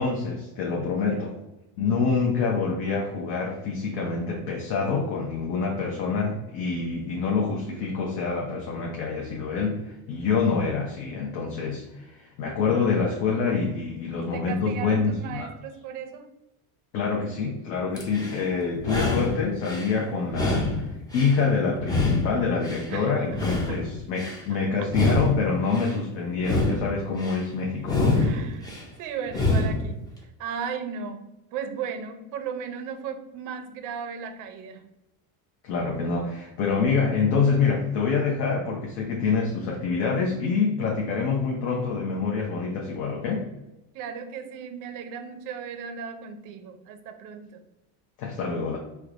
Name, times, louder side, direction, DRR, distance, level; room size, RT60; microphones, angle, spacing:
voice 1, 0.0-1.3 1.8-15.5 16.9-20.9 21.1-28.2 35.6-43.4 48.2-48.8, left 5 dB, 60° left, -2 dB, 0.8 m, -26 dB
voice 2, 14.2-16.3 22.9-23.8 24.5-25.2 28.1-34.9 43.9-47.6, right 7 dB, 50° right, 8 dB, 0.5 m, -36 dB
sound 1, 18.0-18.4 18.8-19.9 20.3-21.4 21.8-22.9 23.3-24.4 24.8-25.9 26.3-27.4 27.8-28.8 29.3-29.9, left 2 dB, 10° left, 0.4 m, -26 dB
4.5 x 2.2 x 2.4 m, 0.95 s
cardioid pair, 135°, 42 cm